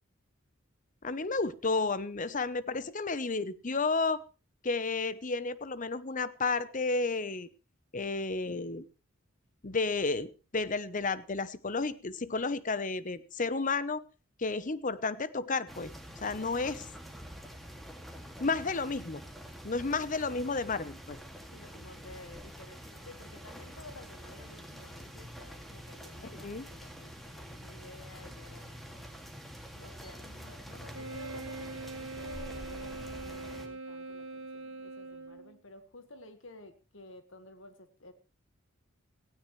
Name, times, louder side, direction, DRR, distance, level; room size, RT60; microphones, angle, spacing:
voice 1, 1.0-4.2 4.6-7.5 7.9-8.9 9.6-14.0 14.4-15.9 16.2-16.9 18.4-19.2 19.6-21.2 26.4-26.7, left 3 dB, 40° left, 15 dB, 0.9 m, -32 dB
sound 1, 15.7-33.7, equal, ahead, 2.3 m, -47 dB
voice 2, 21.5-29.1 29.7-38.1, left 2 dB, 65° left, 9 dB, 1.6 m, -52 dB
Wind instrument woodwind instrument, 30.9-35.6, right 3 dB, 70° right, 1.9 m, -42 dB
18.0 x 16.5 x 3.2 m, 0.32 s
head